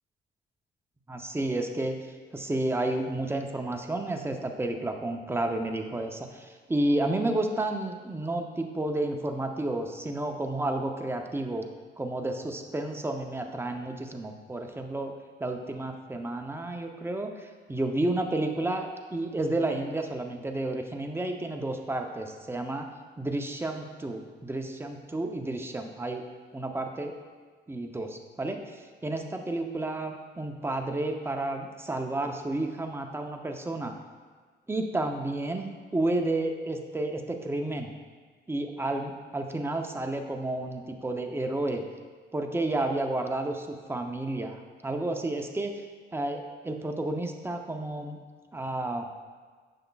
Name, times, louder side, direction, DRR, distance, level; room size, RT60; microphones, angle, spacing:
voice 1, 1.1-2.0 2.3-11.6 12.0-15.1 15.4-22.9 23.2-26.2 26.5-27.1 27.7-34.0 34.7-37.9 38.5-41.8 42.3-43.5 43.9-45.8 46.1-48.2 48.5-49.1, right 2 dB, 10° right, 4 dB, 0.6 m, -31 dB
6.8 x 6.2 x 2.3 m, 1.5 s
cardioid pair, 90°, 20 cm